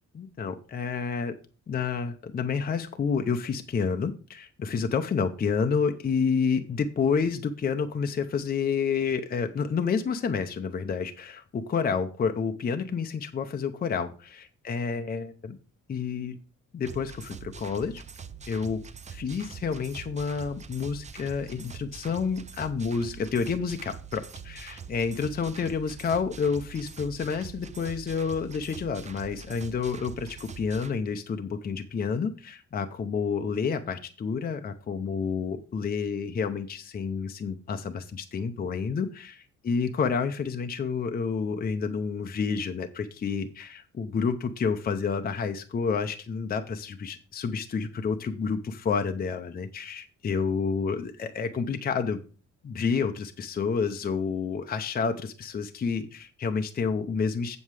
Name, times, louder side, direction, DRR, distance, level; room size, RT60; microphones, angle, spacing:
voice 1, 0.1-1.4 1.7-15.6 15.9-16.4 16.7-18.0 18.5-18.8 19.1-52.2 52.6-57.6, left 5 dB, 30° left, 7 dB, 0.6 m, -29 dB
sound 1, 16.8-30.9, right 6 dB, 25° right, 0.5 m, -44 dB
7.8 x 7.4 x 4.8 m, 0.37 s
wide cardioid pair, 180°, 31 cm